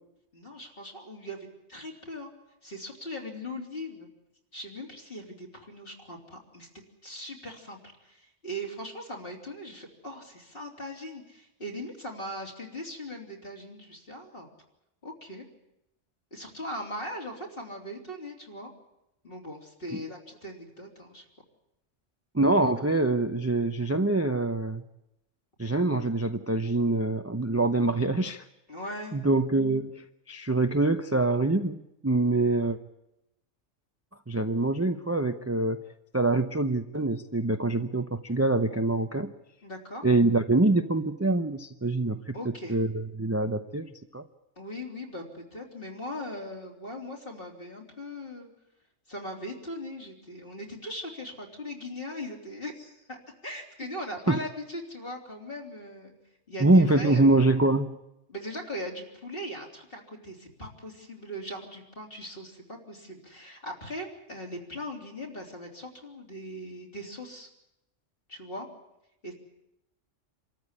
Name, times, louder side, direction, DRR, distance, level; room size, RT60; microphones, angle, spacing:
voice 1, 0.3-2.3 2.6-4.1 4.5-6.7 7.0-14.5 15.0-15.5 16.3-18.7 19.2-21.3 28.7-29.3 39.6-40.1 42.3-42.8 44.6-48.5 49.1-56.1 56.5-57.2 58.3-67.5 68.3-68.7 69.2-69.3, left 1 dB, 50° left, 0 dB, 3.8 m, -40 dB
voice 2, 22.3-24.8 25.6-28.4 29.1-32.8 34.3-35.8 36.1-39.3 40.0-42.3 42.7-44.2 54.3-54.4 56.6-58.0, right 2 dB, 15° right, 8 dB, 0.7 m, -25 dB
26.5 x 14.0 x 9.9 m, 0.89 s
omnidirectional pair, 1.3 m